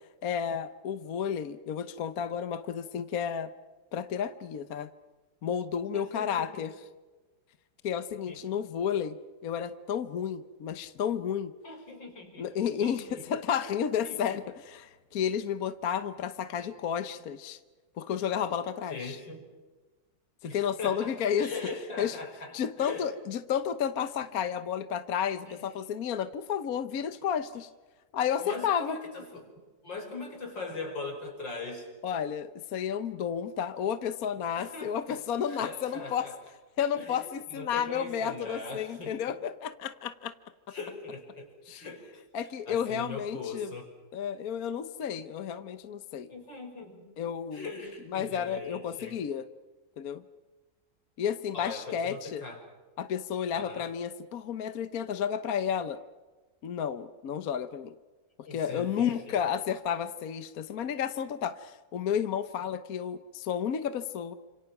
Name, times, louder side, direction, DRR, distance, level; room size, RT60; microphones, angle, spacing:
voice 1, 0.2-3.5 3.9-4.9 5.4-6.7 7.8-9.2 9.4-11.5 12.4-17.6 18.0-19.2 20.4-21.5 22.0-22.2 22.5-27.7 28.1-29.0 32.0-36.3 36.8-40.3 41.7-41.8 42.3-43.7 44.1-46.3 47.2-47.7 48.1-49.5 50.0-50.2 51.2-52.4 53.0-56.0 56.6-57.9 58.5-64.3, left 8 dB, 55° left, 11 dB, 1.3 m, -32 dB
voice 2, 5.9-6.7 8.3-8.4 11.6-12.5 12.8-13.2 14.0-14.2 16.6-16.7 18.9-19.5 20.4-23.1 25.5-25.6 28.4-29.5 29.8-31.9 34.5-35.2 35.5-36.3 36.9-39.3 40.7-42.0 42.7-43.9 46.3-47.1 47.5-49.2 51.5-52.6 53.5-53.9 58.4-59.4, left 3 dB, 85° left, 3 dB, 6.0 m, -41 dB
29.5 x 27.0 x 6.0 m, 1.3 s
omnidirectional pair, 1.9 m